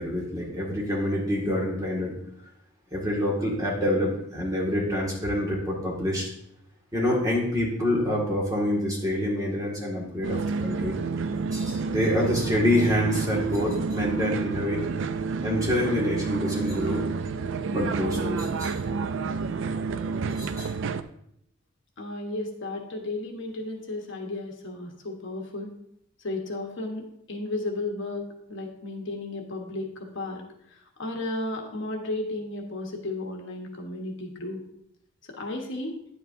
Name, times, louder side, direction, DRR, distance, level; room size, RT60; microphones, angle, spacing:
voice 1, 0.0-2.1 2.9-6.3 6.9-10.9 11.5-14.8 15.4-17.0 17.7-18.7 20.3-20.7, left 1 dB, 15° right, -3 dB, 1.9 m, -26 dB
sound 1, 10.2-21.0, right 4 dB, 60° right, 0.4 m, -29 dB
voice 2, 22.0-25.7 26.2-34.6 35.3-35.9, left 2 dB, 65° left, 2 dB, 1.2 m, -34 dB
9.6 x 7.8 x 2.7 m, 0.74 s
head